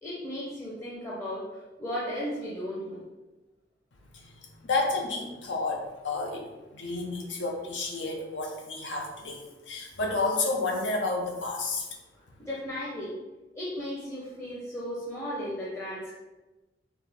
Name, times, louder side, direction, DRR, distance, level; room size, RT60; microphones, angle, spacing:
voice 1, 0.0-3.0 12.4-13.2 13.5-16.2, equal, 15° left, -7 dB, 0.7 m, -35 dB
voice 2, 4.1-11.9, left 3 dB, 75° left, 1 dB, 0.8 m, -31 dB
4.4 x 2.7 x 3.4 m, 1.1 s
head